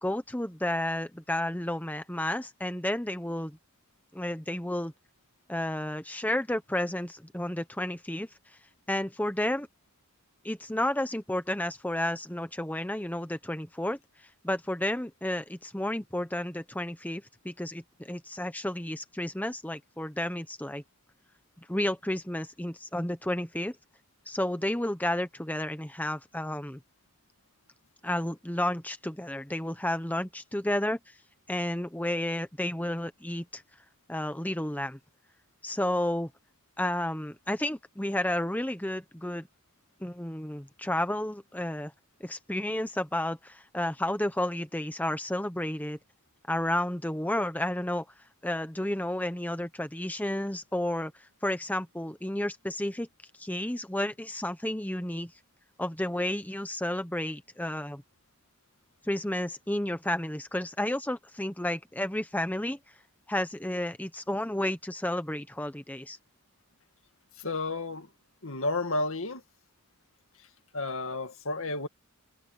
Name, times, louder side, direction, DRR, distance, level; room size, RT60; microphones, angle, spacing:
voice 1, 0.0-3.6 4.1-4.9 5.5-8.3 8.9-9.7 10.4-14.0 14.4-20.8 21.7-23.8 24.3-26.8 28.0-31.2 31.5-33.6 34.1-35.0 35.6-36.3 36.8-39.5 40.0-41.9 42.2-46.0 46.5-48.1 48.4-53.1 53.4-55.3 55.8-58.0 59.0-62.8 63.3-66.2, left 1 dB, 5° left, 0.9 m, -31 dB
voice 2, 67.4-68.1 68.4-69.4 70.7-71.9, left 2 dB, 65° left, 2.2 m, -31 dB
head